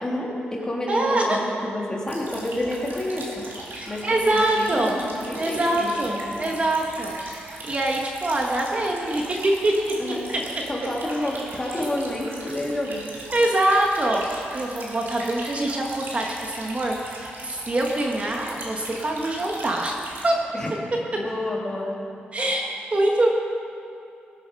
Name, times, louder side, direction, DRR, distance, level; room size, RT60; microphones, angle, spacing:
voice 1, 0.0-3.4 3.9-6.3 10.0-10.3 10.7-13.0 20.5-20.7 21.1-22.0, left 1 dB, 20° left, -3 dB, 3.3 m, -29 dB
voice 2, 0.9-1.4 3.8-5.0 5.3-9.9 10.3-10.4 13.3-20.0 20.2-20.3 22.3-23.3, right 1 dB, 35° right, 0 dB, 1.5 m, -24 dB
sound 1, 2.1-20.3, right 1 dB, 60° right, 3.3 m, -39 dB
19.5 x 9.0 x 5.5 m, 2.7 s
cardioid pair, 90°, 4 cm